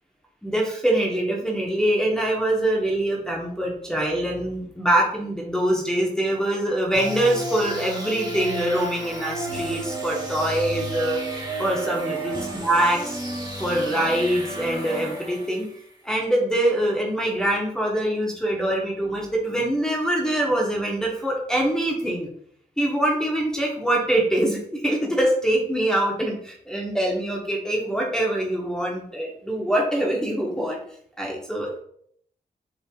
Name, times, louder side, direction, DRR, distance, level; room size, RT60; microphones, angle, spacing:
voice 1, 0.4-11.2 11.6-13.2 13.6-15.7 16.0-22.3 22.8-30.8 31.2-31.8, right 1 dB, 5° left, -3 dB, 1.1 m, -24 dB
sound 1, 6.9-15.8, right 2 dB, 25° right, 1.0 m, -32 dB
5.3 x 3.3 x 2.3 m, 0.65 s
cardioid pair, 70°, 16 cm